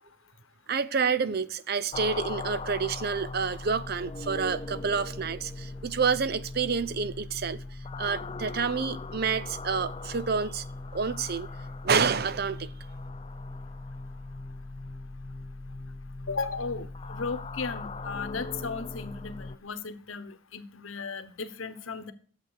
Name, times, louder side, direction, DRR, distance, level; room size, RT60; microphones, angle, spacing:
voice 1, 0.7-7.6 8.0-10.6 10.9-11.5 11.8-12.7, right 5 dB, 50° right, 0.6 m, -28 dB
sound 1, 1.9-19.6, left 3 dB, 30° left, 0.5 m, -39 dB
voice 2, 16.3-22.1, left 4 dB, 70° left, 1.1 m, -36 dB
11.5 x 7.7 x 6.5 m
head